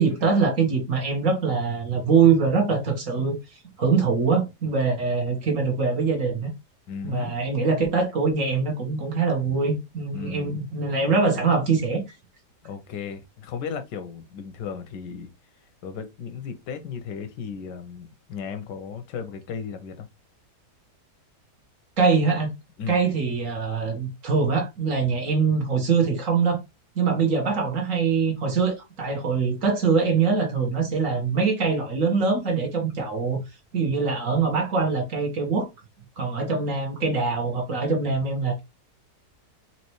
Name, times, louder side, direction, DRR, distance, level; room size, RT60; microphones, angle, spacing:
voice 1, 0.0-3.4 3.8-6.5 7.0-12.0 22.0-22.5 22.9-26.6 26.9-33.4 33.7-35.7 36.2-38.6, right 5 dB, 55° right, 1.5 m, -23 dB
voice 2, 6.9-7.3 10.1-10.6 12.6-15.3 15.8-20.1 22.8-23.0, left 6 dB, 85° left, 1.4 m, -35 dB
4.5 x 2.8 x 3.0 m
omnidirectional pair, 1.8 m